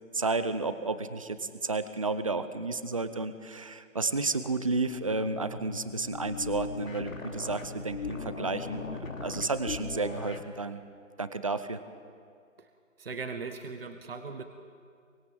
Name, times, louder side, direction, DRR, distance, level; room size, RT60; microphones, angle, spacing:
voice 1, 0.1-10.8 11.2-11.8, right 3 dB, 25° right, 12 dB, 0.7 m, -32 dB
sound 1, 4.8-10.5, left 4 dB, 85° left, 3.3 m, -39 dB
voice 2, 13.0-14.4, right 4 dB, 45° right, 7 dB, 1.6 m, -39 dB
24.5 x 24.0 x 7.4 m, 2.2 s
figure-of-eight pair, 165°, 39 cm